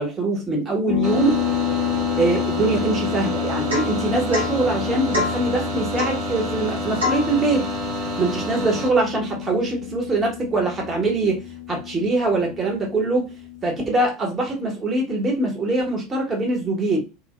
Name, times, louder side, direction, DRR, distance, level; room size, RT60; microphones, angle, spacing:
voice 1, 0.0-1.4 2.1-7.7 8.2-11.4 11.7-13.3 13.6-17.0, right 2 dB, 25° right, 1.1 m, -23 dB
sound 1, 0.9-14.0, left 9 dB, 55° left, 0.4 m, -29 dB
sound 2, 1.0-8.9, right 3 dB, 50° right, 1.0 m, -30 dB
Domestic sounds home sounds / Chink clink / Drip, 3.7-4.0 4.3-4.6 5.1-5.4 6.0-6.2 7.0-7.3, left 3 dB, 80° right, 0.8 m, -25 dB
2.6 x 2.1 x 2.3 m
figure-of-eight pair, 70°, 0 cm